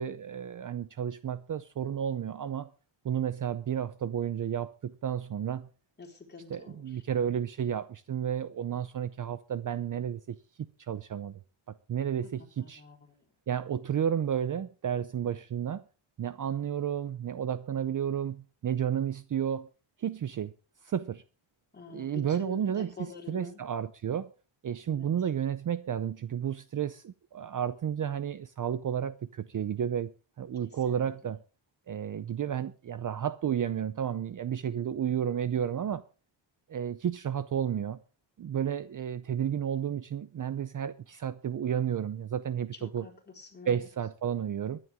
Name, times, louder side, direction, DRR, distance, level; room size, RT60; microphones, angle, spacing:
voice 1, 0.0-2.7 3.0-5.7 6.5-10.4 10.8-11.4 11.7-12.8 13.5-15.8 16.2-19.7 20.0-20.5 20.8-21.2 21.9-24.3 24.6-30.1 30.4-31.4 31.9-36.0 36.7-38.0 38.4-43.0 43.7-44.8, right 9 dB, 40° right, 0.6 m, -32 dB
voice 2, 6.0-7.0 12.6-13.3 21.7-23.6 24.9-25.1 30.6-31.0 42.7-43.9, left 4 dB, 20° left, 4.4 m, -48 dB
22.0 x 11.0 x 3.6 m
wide cardioid pair, 155°, 47 cm